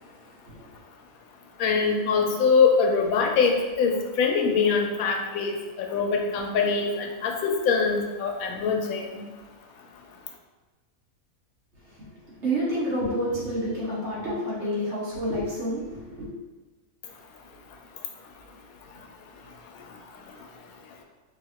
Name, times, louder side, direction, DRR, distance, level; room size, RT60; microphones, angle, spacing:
voice 1, 1.6-9.2, left 5 dB, 80° left, 3 dB, 1.0 m, -23 dB
voice 2, 11.9-16.3, equal, 55° right, -8 dB, 1.5 m, -29 dB
4.8 x 2.6 x 2.9 m, 1.2 s
omnidirectional pair, 1.5 m